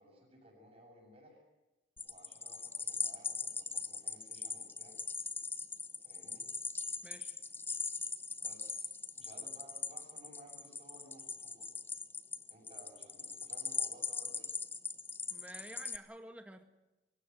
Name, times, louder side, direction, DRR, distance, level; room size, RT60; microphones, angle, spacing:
voice 1, 0.0-1.4 2.1-5.0 6.0-6.5 8.4-11.7 12.5-14.5, right 1 dB, 35° right, -7 dB, 6.9 m, -58 dB
sound 1, 2.0-16.0, left 4 dB, 10° left, 0.7 m, -40 dB
voice 2, 7.0-7.4 15.3-16.6, right 1 dB, 5° right, 6 dB, 1.8 m, -50 dB
24.0 x 17.0 x 9.3 m, 1.0 s
head